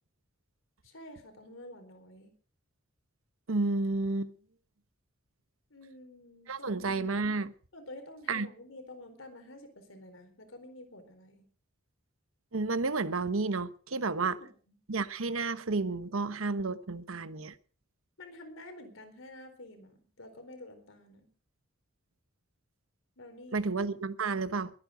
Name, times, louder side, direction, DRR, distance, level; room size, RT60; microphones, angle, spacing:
voice 1, 0.8-2.3 5.7-6.9 7.7-11.5 14.2-14.8 18.2-21.3 23.2-23.7, left 1 dB, 75° left, 4.3 m, -49 dB
voice 2, 3.5-4.3 6.5-7.5 8.3-8.5 12.5-14.4 14.9-17.5 23.5-24.7, right 3 dB, 80° right, 1.0 m, -31 dB
22.0 x 9.7 x 5.1 m
head